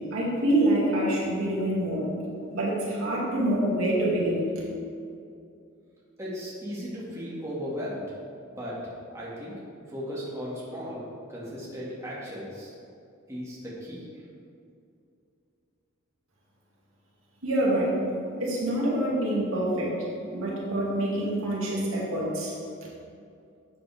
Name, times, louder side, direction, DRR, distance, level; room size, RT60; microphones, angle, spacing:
voice 1, 0.1-2.1 2.5-4.5 17.4-18.0 18.4-20.0 20.3-22.6, right 1 dB, 75° right, -5 dB, 2.6 m, -26 dB
voice 2, 6.2-8.0 8.5-8.8 9.1-9.6 9.9-11.0 11.3-12.7 13.3-14.2, equal, 15° right, -7 dB, 2.3 m, -36 dB
12.0 x 7.9 x 3.6 m, 2.5 s
head